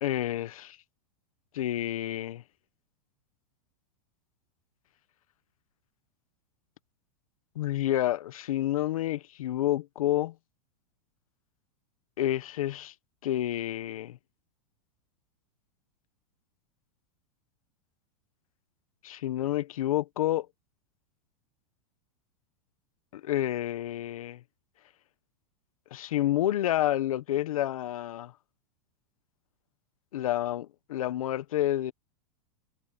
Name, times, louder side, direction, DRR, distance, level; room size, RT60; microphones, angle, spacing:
voice 1, 0.0-0.8 1.5-2.4 7.5-10.3 12.2-12.9 13.2-14.2 19.0-20.5 23.1-24.4 25.9-28.3 30.1-31.9, left 13 dB, 80° left, 1.3 m, -29 dB
supercardioid pair, 160°, 18 cm